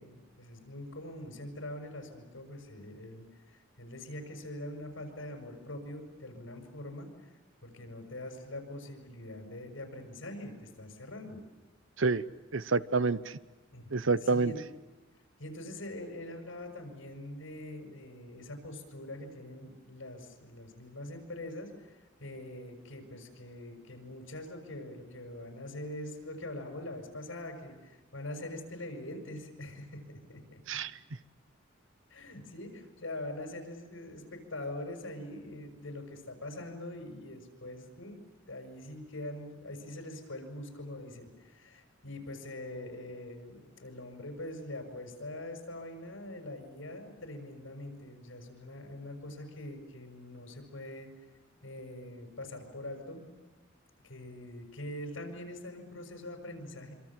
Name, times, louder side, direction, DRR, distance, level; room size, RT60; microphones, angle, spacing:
voice 1, 0.0-7.3 7.6-11.4 13.7-13.9 14.2-14.6 15.4-30.6 32.1-38.2 38.5-51.1 51.6-53.3 54.0-56.9, left 1 dB, 80° left, 4 dB, 6.5 m, -43 dB
voice 2, 12.5-13.4 13.9-14.5 30.7-31.0, right 4 dB, 75° right, 15 dB, 0.9 m, -28 dB
27.0 x 25.5 x 7.6 m, 1.2 s
head